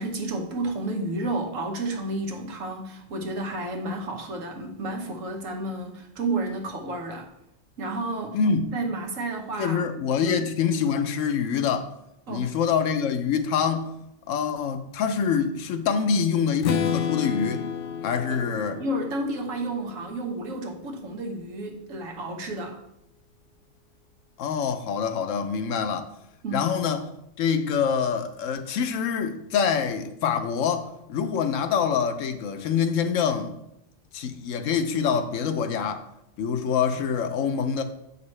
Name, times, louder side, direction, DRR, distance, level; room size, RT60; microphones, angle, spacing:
voice 1, 0.0-7.3 7.8-8.4 8.7-9.8 10.2-10.5 12.3-12.5 18.3-18.4 18.8-22.8 26.4-26.7, right 2 dB, 90° right, 1.4 m, -31 dB
voice 2, 8.3-8.8 9.6-11.9 12.3-13.9 14.3-17.7 18.0-18.8 24.4-26.1 26.5-27.0 27.4-33.5 34.1-36.0 36.4-37.8, left 6 dB, 80° left, 1.0 m, -25 dB
Strum, 16.6-20.6, left 8 dB, 60° left, 0.6 m, -31 dB
7.5 x 5.4 x 3.2 m
omnidirectional pair, 1.3 m